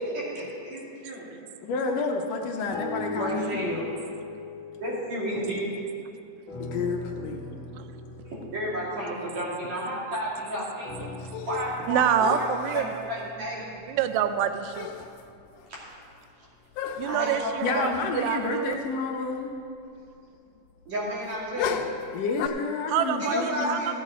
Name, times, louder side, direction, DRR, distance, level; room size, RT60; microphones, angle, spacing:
voice 1, 0.1-1.3 3.1-3.9 4.8-5.7 8.5-10.9 11.5-12.8 13.1-13.7 15.7-15.8 17.0-17.9 20.9-21.9 23.2-23.9, equal, 60° right, -7 dB, 3.9 m, -31 dB
voice 2, 1.6-3.8 6.6-7.6 17.6-19.5 22.1-23.8, left 4 dB, 75° left, 2 dB, 1.6 m, -30 dB
sound 1, 2.7-6.1 6.5-10.2 10.8-15.1 15.7-15.8, left 2 dB, 60° left, 1.4 m, -40 dB
sound 2, 11.2-11.8 12.2-13.0 14.4-14.5 14.7-15.2 15.6-15.7 16.8-17.3 17.9-18.2 18.4-18.5 21.6-22.5, left 8 dB, 90° left, 2.2 m, -33 dB
voice 3, 11.8-13.0 13.8-14.9 17.0-18.8 22.9-23.9, right 9 dB, 80° right, 10 dB, 1.8 m, -27 dB
15.5 x 8.7 x 4.3 m, 2.5 s
omnidirectional pair, 3.6 m